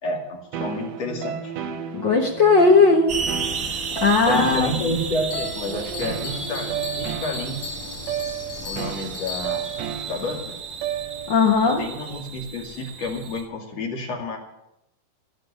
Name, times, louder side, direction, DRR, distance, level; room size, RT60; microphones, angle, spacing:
voice 1, 0.0-1.5 4.2-7.6 8.6-9.7 10.1-10.6 11.6-14.4, left 2 dB, 50° left, 1 dB, 3.2 m, -30 dB
sound 1, 0.5-11.5, right 8 dB, 85° right, 1.4 m, -33 dB
voice 2, 1.9-3.1 4.0-4.9 11.3-11.8, left 4 dB, 65° left, 1 dB, 1.1 m, -17 dB
sound 2, 3.1-13.4, right 5 dB, 70° right, 0.7 m, -33 dB
Bell, 5.3-9.8, left 7 dB, 80° left, 4.5 m, -37 dB
17.0 x 5.8 x 9.8 m, 0.84 s
omnidirectional pair, 4.2 m